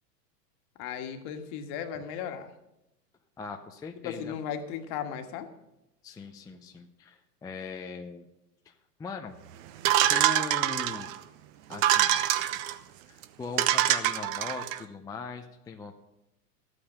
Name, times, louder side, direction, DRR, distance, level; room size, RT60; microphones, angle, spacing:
voice 1, 0.8-2.5 4.0-5.5, left 8 dB, 50° left, 7 dB, 1.7 m, -36 dB
voice 2, 3.4-4.4 6.0-8.3 8.7-8.8 9.0-9.4 10.1-11.1 11.7-12.1 13.1-15.9, left 4 dB, 10° left, 4 dB, 0.5 m, -40 dB
sound 1, 9.8-11.2 11.7-12.7 13.2-13.3 13.6-14.8, right 13 dB, 50° right, 1.0 m, -25 dB
12.5 x 8.9 x 6.4 m, 0.90 s
hypercardioid pair, 115°, 49 cm